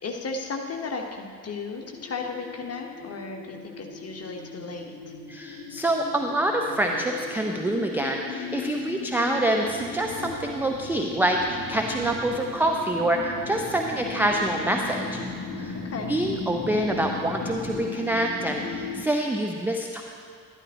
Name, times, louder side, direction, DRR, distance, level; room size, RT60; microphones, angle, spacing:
voice 1, 0.0-5.1 15.7-16.1, left 4 dB, 30° left, 2 dB, 1.2 m, -35 dB
sound 1, 1.7-19.0, left 5 dB, 45° left, 1.5 m, -37 dB
voice 2, 5.3-15.2 15.6-15.8 16.1-20.0, right 1 dB, 5° right, 1 dB, 0.3 m, -26 dB
sound 2, 9.6-17.8, right 1 dB, 20° right, 2.5 m, -45 dB
11.5 x 11.5 x 2.9 m, 2.4 s
figure-of-eight pair, 50°, 50 cm